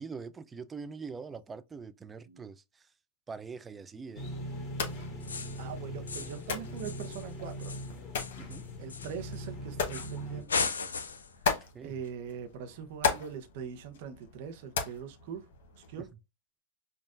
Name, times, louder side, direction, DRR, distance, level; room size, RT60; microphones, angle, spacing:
voice 1, 0.0-2.9 3.3-4.3 8.4-8.7 11.7-12.0 16.0-16.1, right 5 dB, 20° right, 0.4 m, -43 dB
sound 1, 4.1-10.4, equal, 35° left, 1.8 m, -41 dB
sound 2, 4.6-16.1, left 5 dB, 65° left, 1.0 m, -38 dB
sound 3, 5.2-5.7 6.1-6.5 6.8-9.5 9.9-10.2 10.5-11.3, left 5 dB, 90° left, 0.5 m, -36 dB
voice 2, 5.6-7.8 8.8-10.7 11.8-15.5 15.8-16.1, right 7 dB, 55° right, 0.8 m, -42 dB
5.3 x 2.4 x 2.4 m
hypercardioid pair, 105°, 0 cm